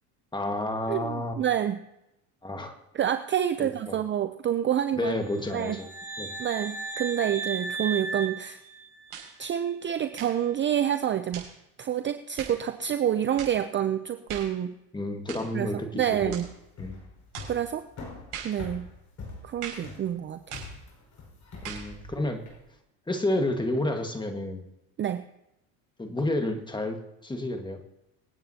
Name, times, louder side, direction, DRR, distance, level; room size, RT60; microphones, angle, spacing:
voice 1, 0.3-1.4 2.4-2.7 3.6-4.0 4.9-5.9 6.2-6.3 14.9-16.3 16.8-17.0 21.6-22.4 23.1-24.6 26.0-27.8, left 1 dB, 10° left, 5 dB, 1.6 m, -30 dB
voice 2, 0.9-1.8 2.9-5.2 5.5-5.8 6.4-8.6 9.4-11.5 11.8-14.8 15.5-16.5 17.5-17.9 18.4-18.9 19.4-20.6 25.0-25.3, right 10 dB, 30° right, 10 dB, 0.5 m, -28 dB
sound 1, 5.3-9.3, right 3 dB, 5° right, 2.4 m, -36 dB
sound 2, 9.1-9.4 10.1-10.4 11.3-11.6 12.4-12.6 13.4-13.6 14.3-14.6 15.3-15.5 16.3-16.5 17.3-17.6 18.3-18.6 19.6-19.9 20.5-20.8 21.6-21.9, right 7 dB, 60° right, 6.2 m, -40 dB
sound 3, 16.1-22.6, left 3 dB, 40° left, 5.2 m, -43 dB
26.5 x 9.1 x 2.8 m, 0.88 s
supercardioid pair, 100°, 42 cm